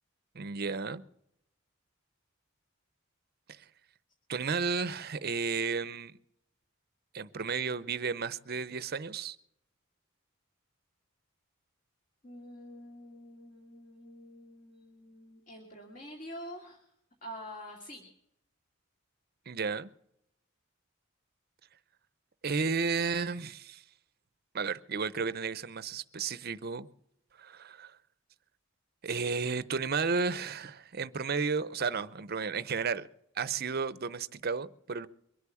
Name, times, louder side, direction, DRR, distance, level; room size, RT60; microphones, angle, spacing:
voice 1, 0.3-1.0 3.5-3.6 4.3-6.2 7.1-9.4 19.5-19.9 22.4-23.8 24.5-26.9 27.4-28.0 29.0-33.1 33.4-35.1, right 5 dB, 50° right, 15 dB, 0.7 m, -33 dB
voice 2, 12.2-16.9 17.2-18.1, equal, 40° left, 0 dB, 2.4 m, -47 dB
23.5 x 8.4 x 7.1 m, 0.76 s
head